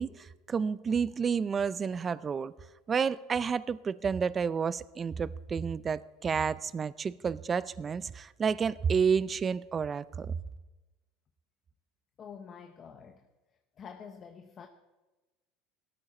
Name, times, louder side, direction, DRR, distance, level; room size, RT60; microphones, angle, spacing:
voice 1, 0.0-2.5 2.9-10.3, right 6 dB, 20° right, 0.4 m, -30 dB
voice 2, 12.2-13.3 13.8-14.7, left 7 dB, 25° left, 0.8 m, -47 dB
17.5 x 13.0 x 4.3 m
cardioid pair, 160°, 0 cm